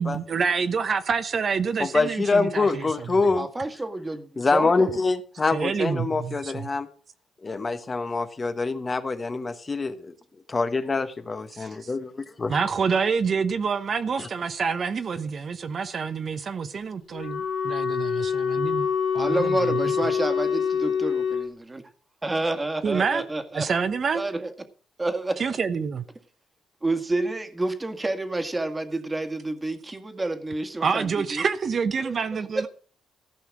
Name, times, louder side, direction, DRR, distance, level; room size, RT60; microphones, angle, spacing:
voice 1, 0.0-3.0 5.5-6.7 11.5-11.9 12.5-18.9 19.1-20.0 22.8-23.2 23.5-24.2 25.4-26.0 30.8-32.7, right 5 dB, 45° right, 0.9 m, -27 dB
voice 2, 1.8-3.5 4.4-6.9 7.4-10.1 10.5-12.1 12.4-12.6 14.2-14.3, left 3 dB, 30° left, 1.2 m, -25 dB
voice 3, 3.4-5.0 19.2-21.8 22.2-23.8 24.1-24.5 25.0-25.6 26.8-31.4 32.0-32.2 32.6-32.7, right 2 dB, 20° right, 1.8 m, -29 dB
Wind instrument woodwind instrument, 17.1-21.5, left 7 dB, 85° left, 3.3 m, -25 dB
15.0 x 5.7 x 7.5 m
cardioid pair, 90°, 0 cm